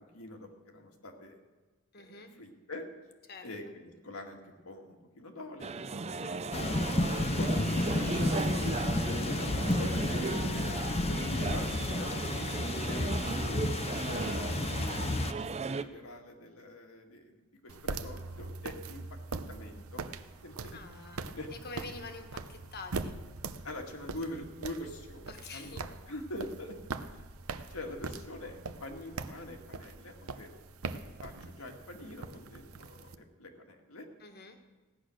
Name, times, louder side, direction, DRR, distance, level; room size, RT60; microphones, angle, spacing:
voice 1, 0.0-1.4 2.0-2.9 3.4-5.7 6.2-13.6 14.0-17.4 17.6-19.0 19.5-20.0 20.4-20.8 21.3-21.5 23.6-26.8 27.7-30.6 31.2-34.1, left 1 dB, 80° left, 2 dB, 2.1 m, -44 dB
voice 2, 1.9-2.3 3.3-3.5 20.7-21.2 21.5-23.1 25.3-25.8 34.2-34.6, left 3 dB, 50° left, 6 dB, 1.6 m, -46 dB
sound 1, 5.6-15.8, right 4 dB, 30° right, 0.5 m, -36 dB
sound 2, 6.5-15.3, left 2 dB, 30° left, 0.7 m, -31 dB
sound 3, 17.7-33.1, right 3 dB, 80° right, 0.8 m, -42 dB
16.0 x 10.5 x 6.4 m, 1.3 s
head